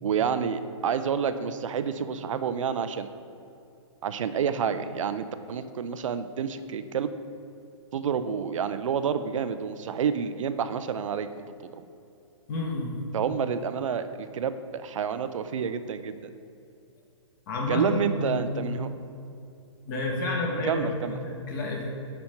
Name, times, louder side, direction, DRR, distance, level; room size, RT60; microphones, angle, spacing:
voice 1, 0.0-3.1 4.0-7.1 7.9-11.3 11.6-11.8 13.1-16.2 17.7-18.9 20.6-21.1, right 7 dB, 80° right, 11 dB, 0.4 m, -29 dB
voice 2, 12.5-12.9 17.5-18.7 19.9-21.9, left 2 dB, 40° left, -1 dB, 1.4 m, -30 dB
5.7 x 5.1 x 4.3 m, 2.6 s
hypercardioid pair, 155°, 16 cm